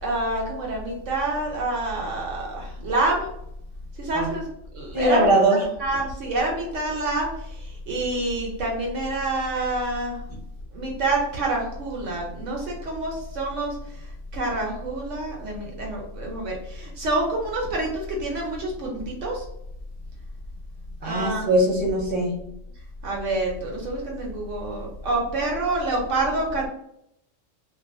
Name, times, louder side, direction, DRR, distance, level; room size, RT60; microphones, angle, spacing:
voice 1, 0.0-3.3 4.0-4.4 4.7-5.3 5.8-7.3 7.6-10.2 10.7-13.8 14.3-19.4 21.0-21.5 23.0-26.7, right 2 dB, 70° right, -1 dB, 0.9 m, -27 dB
voice 2, 4.9-5.6 21.0-22.3, right 1 dB, 10° right, -5 dB, 0.7 m, -20 dB
2.4 x 2.3 x 2.5 m, 0.76 s
omnidirectional pair, 1.4 m